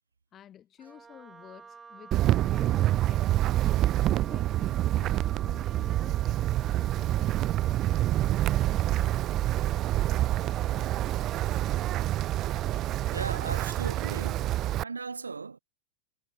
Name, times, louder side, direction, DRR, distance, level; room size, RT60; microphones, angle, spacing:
voice 1, 0.3-3.3 3.9-9.7 10.7-11.2, left 10 dB, 25° left, 3.5 m, -52 dB
Wind instrument woodwind instrument, 0.8-13.3, right 5 dB, 15° right, 2.2 m, -49 dB
Wind, 2.1-14.8, right 14 dB, 35° right, 0.6 m, -27 dB
voice 2, 13.1-14.5 14.8-15.6, right 4 dB, 75° right, 4.4 m, -37 dB
figure-of-eight pair, 90°, 0 cm